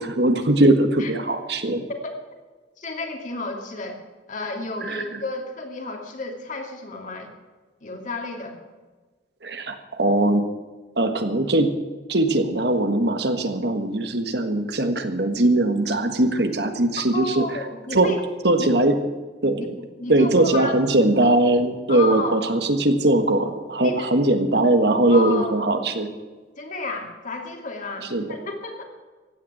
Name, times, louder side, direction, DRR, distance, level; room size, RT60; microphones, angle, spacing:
voice 1, 0.0-1.8 4.8-5.2 9.4-10.4 11.0-11.7 12.1-17.4 17.9-18.1 18.4-19.0 19.4-19.7 20.1-26.1 28.1-28.2, right 1 dB, 65° right, 7 dB, 1.6 m, -20 dB
voice 2, 2.8-4.0 4.3-7.3 7.8-8.6 17.1-18.2 18.6-18.7 19.6-19.7 20.0-20.7 21.9-22.4 23.8-24.1 25.1-25.6 26.6-28.8, left 3 dB, 45° left, 2 dB, 2.6 m, -32 dB
15.5 x 9.3 x 8.7 m, 1.3 s
head